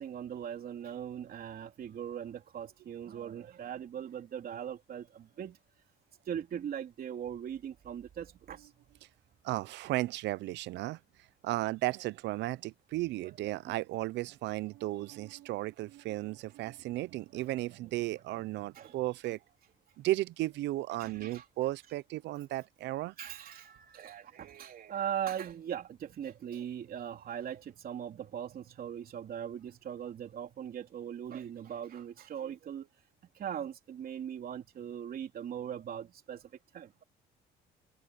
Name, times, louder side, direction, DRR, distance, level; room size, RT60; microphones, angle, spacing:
voice 1, 0.0-5.6 6.3-8.7 13.2-13.6 18.8-19.0 21.0-21.4 23.2-32.9 33.3-37.0, right 9 dB, 55° right, 3.4 m, -40 dB
voice 2, 9.4-11.0 11.4-19.4 20.0-23.1, right 17 dB, 80° right, 0.6 m, -34 dB
cardioid pair, 105°, 18 cm